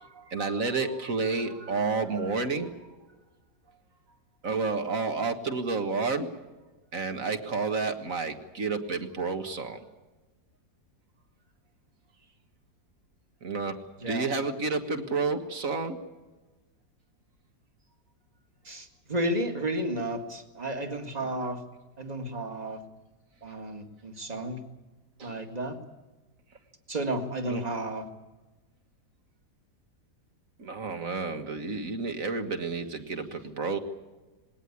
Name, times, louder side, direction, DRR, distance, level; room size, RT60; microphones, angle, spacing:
voice 1, 0.0-2.7 4.4-6.3 6.9-9.8 13.4-13.8 14.1-16.0 25.2-25.4 27.5-27.6 30.6-33.8, right 4 dB, 50° right, 7 dB, 1.9 m, -30 dB
voice 2, 14.0-14.3 18.7-21.6 22.0-22.8 23.4-24.6 25.2-25.8 26.9-28.1, right 1 dB, 25° right, 7 dB, 1.9 m, -32 dB
20.5 x 18.0 x 9.8 m, 1.2 s
omnidirectional pair, 1.8 m